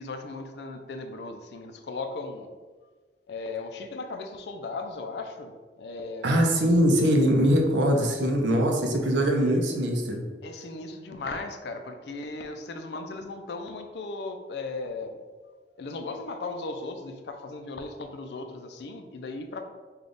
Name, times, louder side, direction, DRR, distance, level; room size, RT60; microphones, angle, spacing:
voice 1, 0.0-2.5 3.3-6.4 10.4-15.2 15.8-19.6, left 3 dB, 70° left, 6 dB, 0.4 m, -37 dB
voice 2, 6.2-10.2, equal, 90° right, 2 dB, 0.6 m, -22 dB
3.4 x 2.3 x 3.8 m, 1.4 s
head